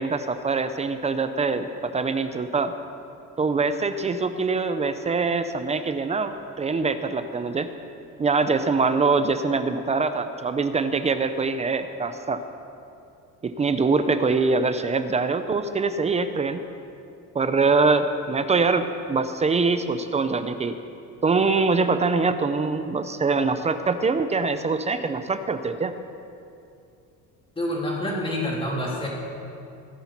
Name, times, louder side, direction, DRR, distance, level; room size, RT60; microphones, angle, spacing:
voice 1, 0.0-2.7 3.4-7.7 8.2-12.4 13.4-16.6 17.3-20.8 21.2-25.9, right 4 dB, 20° right, 10 dB, 0.5 m, -24 dB
voice 2, 27.5-29.1, left 1 dB, 15° left, -4 dB, 3.3 m, -27 dB
17.5 x 11.0 x 5.9 m, 2.6 s
cardioid pair, 155°, 32 cm